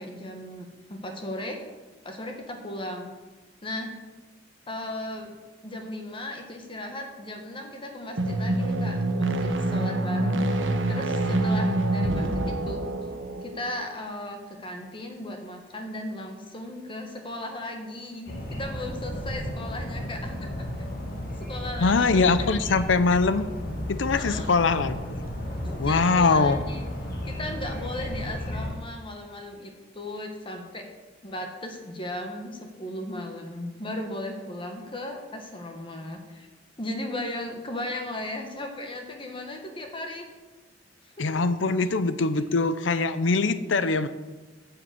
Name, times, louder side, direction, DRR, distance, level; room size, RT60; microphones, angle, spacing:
voice 1, 0.0-1.6 2.0-3.1 3.6-4.0 4.7-5.4 5.6-10.5 10.9-12.8 13.4-20.5 21.4-22.3 24.2-24.5 25.6-26.8 27.2-30.8 31.2-36.5 36.8-40.3 41.0-41.4 41.7-41.8, left 1 dB, 30° left, 3 dB, 1.3 m, -36 dB
sound 1, 8.1-13.7, right 1 dB, 85° right, 1.1 m, -26 dB
sound 2, 18.3-28.7, left 1 dB, 55° left, 2.2 m, -34 dB
voice 2, 21.8-23.5 23.9-25.0 25.8-26.6 41.2-44.1, left 4 dB, 85° left, 12 dB, 0.6 m, -22 dB
10.0 x 6.8 x 7.8 m, 1.2 s
head